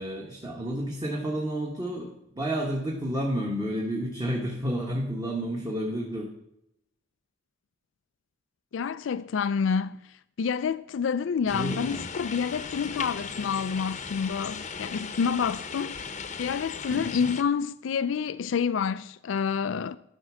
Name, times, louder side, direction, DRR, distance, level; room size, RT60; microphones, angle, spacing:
voice 1, 0.0-6.3 11.5-12.0 16.9-17.1, right 1 dB, 20° right, 1.4 m, -30 dB
voice 2, 8.7-10.0 10.4-20.0, left 6 dB, 85° left, 0.4 m, -28 dB
sound 1, 11.5-17.4, left 5 dB, 40° left, 0.8 m, -37 dB
12.5 x 6.0 x 6.2 m
head